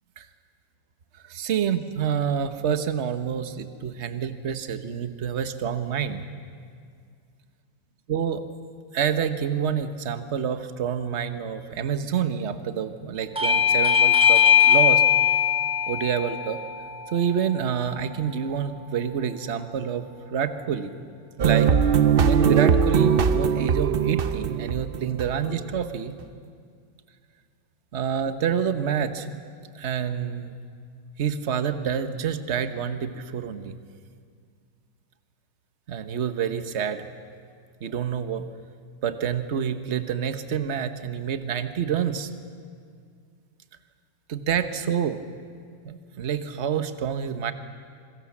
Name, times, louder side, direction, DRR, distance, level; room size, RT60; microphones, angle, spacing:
voice 1, 1.3-6.2 8.1-8.4 8.9-15.0 15.9-16.6 17.1-20.9 21.4-21.7 22.2-26.1 27.9-29.3 29.7-30.5 31.2-33.8 35.9-37.0 37.8-38.5 39.0-42.3 44.3-45.2 45.8-47.5, right 8 dB, 45° right, 10 dB, 1.3 m, -27 dB
Bell / Doorbell, 13.4-18.5, left 9 dB, 5° right, 1.1 m, -21 dB
sound 1, 21.4-25.8, right 7 dB, 65° right, 0.5 m, -21 dB
26.0 x 23.0 x 7.3 m, 2.2 s
omnidirectional pair, 2.0 m